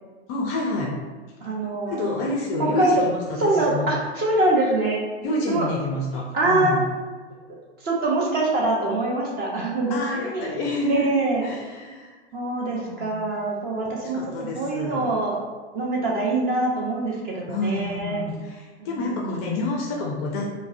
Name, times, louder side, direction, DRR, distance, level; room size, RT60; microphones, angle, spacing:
voice 1, 0.3-1.0 1.8-3.9 5.2-6.8 9.9-11.1 11.4-12.2 12.7-13.2 13.9-15.1 17.5-20.5, left 2 dB, 30° left, -1 dB, 0.4 m, -28 dB
voice 2, 1.4-2.2 2.6-3.0 3.4-5.0 5.5-5.7 6.3-6.8 7.8-10.6 10.9-11.4 12.3-14.2 14.5-15.4 15.7-18.2 18.8-19.4, right 2 dB, 25° right, -2 dB, 0.7 m, -24 dB
4.5 x 2.1 x 2.5 m, 1.4 s
hypercardioid pair, 125°, 34 cm